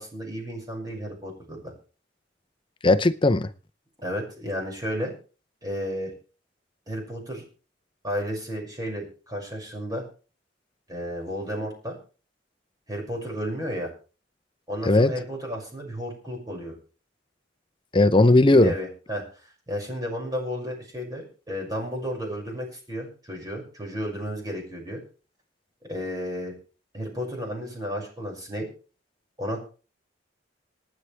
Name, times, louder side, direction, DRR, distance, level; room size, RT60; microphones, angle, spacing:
voice 1, 0.0-1.7 4.0-5.1 5.6-6.1 6.9-7.4 8.0-10.0 10.9-12.0 12.9-13.9 14.7-16.7 18.5-19.2 19.7-25.0 25.9-26.5 26.9-28.7 29.4-29.6, equal, 20° right, 6.2 m, -32 dB
voice 2, 2.8-3.5 14.9-15.1 17.9-18.7, left 2 dB, 25° left, 0.6 m, -17 dB
26.5 x 9.7 x 3.4 m
head